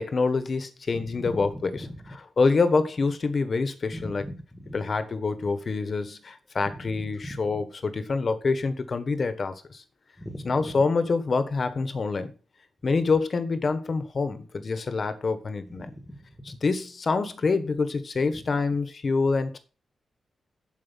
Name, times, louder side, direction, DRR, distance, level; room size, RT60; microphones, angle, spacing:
voice 1, 0.0-1.7 2.4-4.2 4.7-9.8 10.4-12.3 12.8-15.9 16.5-19.6, left 4 dB, 40° left, 10 dB, 1.3 m, -26 dB
voice 2, 0.9-2.1 3.9-4.8 6.7-7.6 10.2-10.8 15.7-16.4 18.3-18.4, equal, 10° left, 8 dB, 1.6 m, -40 dB
11.5 x 5.1 x 5.2 m, 0.34 s
wide cardioid pair, 145°, 0 cm